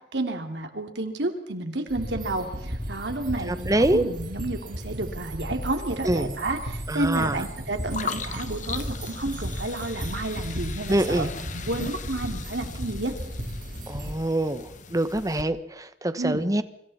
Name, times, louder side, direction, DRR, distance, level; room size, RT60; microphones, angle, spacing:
voice 1, 0.1-13.1 16.1-16.5, right 2 dB, 90° right, 5 dB, 3.0 m, -31 dB
sound 1, 1.9-14.1, equal, 50° right, 4.0 m, -35 dB
voice 2, 3.5-4.0 6.0-6.4 6.9-7.4 10.9-11.3 13.9-16.6, right 1 dB, 20° right, 12 dB, 1.2 m, -25 dB
sound 2, 7.9-15.4, left 5 dB, 45° left, 1.3 m, -39 dB
28.5 x 25.5 x 4.3 m, 0.79 s
head